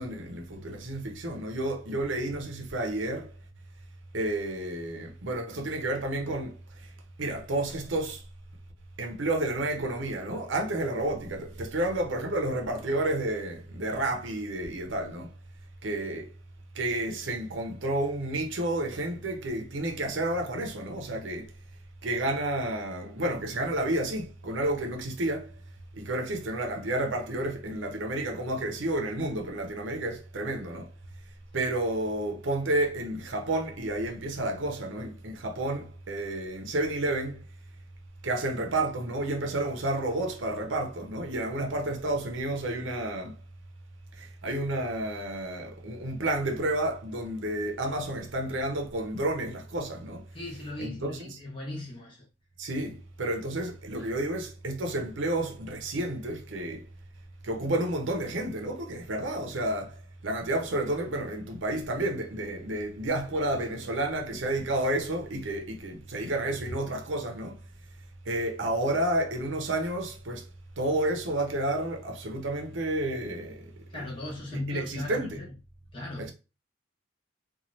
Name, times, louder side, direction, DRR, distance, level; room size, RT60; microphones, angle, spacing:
voice 1, 0.0-3.3 4.1-6.9 7.2-8.2 9.0-15.3 15.8-16.3 16.7-21.5 22.0-25.5 26.0-30.9 31.5-37.4 38.2-43.4 44.1-50.3 50.8-51.4 52.6-56.9 57.4-67.6 68.2-70.5 70.8-74.0 74.5-75.4 76.2-76.3, right 1 dB, 75° right, 0.7 m, -31 dB
voice 2, 50.3-52.3 54.0-54.1 73.9-75.5 75.9-76.3, left 2 dB, 25° left, 0.7 m, -38 dB
2.7 x 2.4 x 3.0 m
head